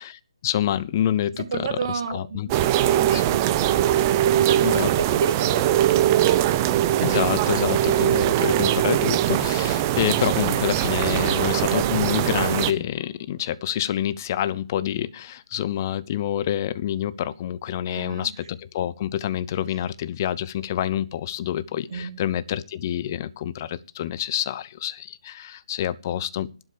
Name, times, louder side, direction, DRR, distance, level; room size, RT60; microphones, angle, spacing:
voice 1, 0.4-1.3 2.1-2.5 4.6-4.9 7.0-9.2 9.4-13.4 13.6-15.1 15.5-17.1 17.4-18.3 18.7-19.9 20.2-21.6 22.2-23.3 24.0-24.9 25.7-26.5, left 11 dB, 30° left, 0.7 m, -26 dB
voice 2, 1.4-2.6 3.1-3.6 4.2-6.5 7.8-7.9 17.9-18.3 21.9-22.1, right 6 dB, 45° right, 2.6 m, -31 dB
sound 1, 2.5-12.7, right 12 dB, 25° right, 0.8 m, -21 dB
12.0 x 7.9 x 6.9 m
figure-of-eight pair, 150°, 3 cm